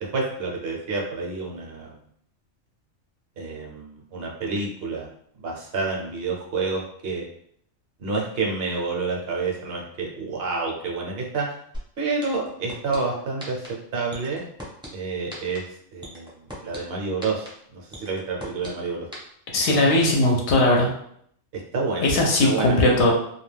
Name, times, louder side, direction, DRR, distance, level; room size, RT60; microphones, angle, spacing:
voice 1, 0.0-1.9 3.4-5.1 5.4-7.2 8.0-11.5 12.0-13.7 13.9-14.5 14.9-15.7 15.9-16.3 16.6-19.1 21.5-22.1 22.4-22.8, right 4 dB, 60° right, -1 dB, 0.8 m, -29 dB
sound 1, 11.7-11.8 12.2-13.0 13.4-13.7 14.1-14.9 15.3-15.6 16.0-16.8 17.2-17.5 17.9-18.7 19.1-19.2, equal, 5° right, 0.5 m, -37 dB
voice 2, 19.5-20.9 22.0-23.1, left 1 dB, 70° left, -1 dB, 0.8 m, -19 dB
2.3 x 2.2 x 3.2 m, 0.67 s
omnidirectional pair, 1.3 m